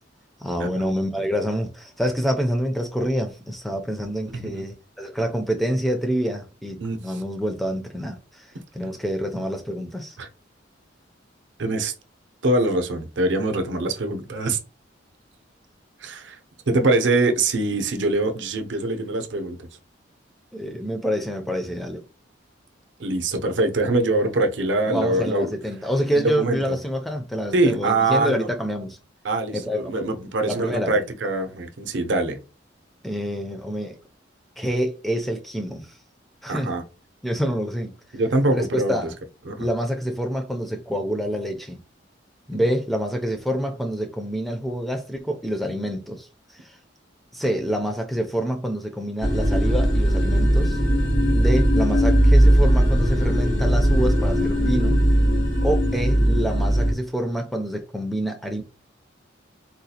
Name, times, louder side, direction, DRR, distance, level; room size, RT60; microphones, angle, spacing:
voice 1, 0.4-8.5 8.7-10.2 20.5-22.0 24.9-29.0 29.5-29.8 30.5-31.0 33.0-34.0 34.6-36.0 36.4-36.7 37.2-37.9 38.5-39.2 39.6-41.8 42.5-46.8 47.3-50.8 51.3-55.0 55.6-58.6, equal, ahead, 0.4 m, -27 dB
voice 2, 11.6-11.9 12.4-14.6 16.0-16.4 16.7-19.6 23.0-25.5 26.1-26.8 27.5-28.5 29.2-32.4 36.5-36.8 38.1-39.0 39.5-39.7 42.5-42.6, right 2 dB, 70° right, 0.6 m, -23 dB
sound 1, 49.2-56.9, equal, 85° left, 1.7 m, -19 dB
3.8 x 2.3 x 2.8 m
head